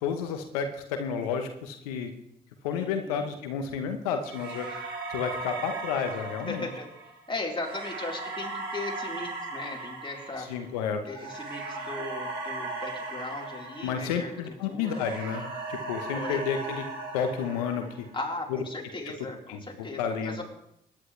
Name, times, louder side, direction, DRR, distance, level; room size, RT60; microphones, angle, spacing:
voice 1, 0.0-2.1 2.6-4.7 5.1-6.7 10.4-11.0 13.8-16.9 17.1-18.1 18.5-18.6 19.0-20.4, left 7 dB, 90° left, 7 dB, 1.0 m, -31 dB
voice 2, 2.7-3.3 6.5-6.9 7.3-10.5 11.0-15.0 16.2-16.4 18.1-20.4, left 2 dB, 25° left, -1 dB, 4.0 m, -37 dB
sound 1, 4.3-14.5 14.8-18.2, right 3 dB, 65° right, 5.2 m, -37 dB
21.5 x 10.5 x 3.3 m, 0.76 s
hypercardioid pair, 45°, 18 cm